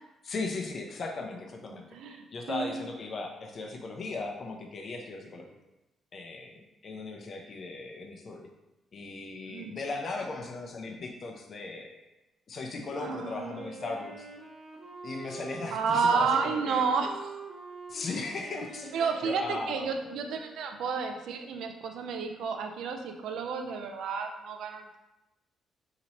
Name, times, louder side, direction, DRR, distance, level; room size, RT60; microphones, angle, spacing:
voice 1, 0.2-5.6 6.1-8.5 8.9-11.9 12.5-14.3 15.0-16.8 17.9-19.9, left 3 dB, 50° left, 2 dB, 0.5 m, -37 dB
voice 2, 1.7-2.8 9.5-9.7 13.0-13.5 15.7-17.4 18.9-25.0, right 5 dB, 80° right, 5 dB, 0.3 m, -31 dB
Wind instrument woodwind instrument, 13.0-20.7, right 3 dB, 45° right, 0.7 m, -45 dB
4.1 x 2.9 x 2.8 m, 0.97 s
cardioid pair, 90°, 0 cm